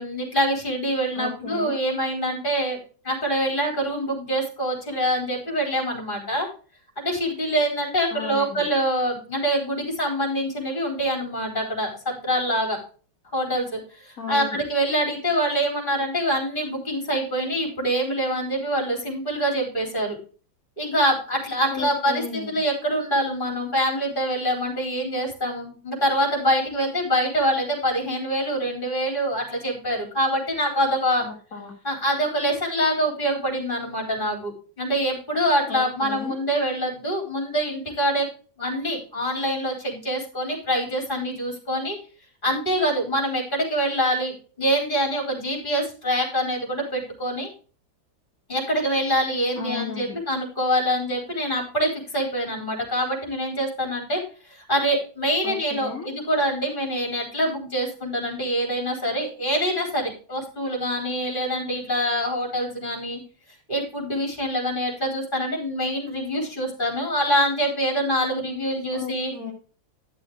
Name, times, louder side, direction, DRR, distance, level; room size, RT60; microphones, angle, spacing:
voice 1, 0.0-2.8 3.0-6.5 7.0-12.8 13.3-20.2 20.8-31.2 31.8-34.5 34.8-38.3 38.6-42.0 42.4-47.5 48.5-54.2 54.5-63.2 63.7-69.3, equal, 25° left, 0 dB, 4.2 m, -25 dB
voice 2, 1.2-1.8 8.1-8.6 14.2-14.6 21.7-22.6 31.2-31.7 35.7-36.4 49.6-50.2 55.4-56.1 68.9-69.5, left 5 dB, 45° left, -1 dB, 2.3 m, -34 dB
11.5 x 6.9 x 3.8 m, 0.38 s
omnidirectional pair, 2.1 m